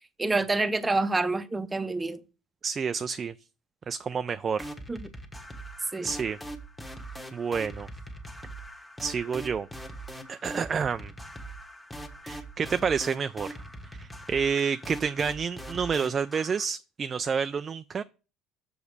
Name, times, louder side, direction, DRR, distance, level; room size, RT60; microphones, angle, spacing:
voice 1, 0.2-2.2 4.9-5.1 5.9-6.1, right 3 dB, 15° right, 0.7 m, -27 dB
voice 2, 2.6-3.3 3.9-4.7 6.0-6.4 7.3-7.9 9.0-9.7 10.3-11.1 12.2-13.6 14.0-18.0, right 6 dB, 30° right, 0.3 m, -29 dB
sound 1, 4.6-16.7, right 1 dB, 5° left, 1.3 m, -42 dB
6.9 x 5.0 x 6.6 m
cardioid pair, 115°, 0 cm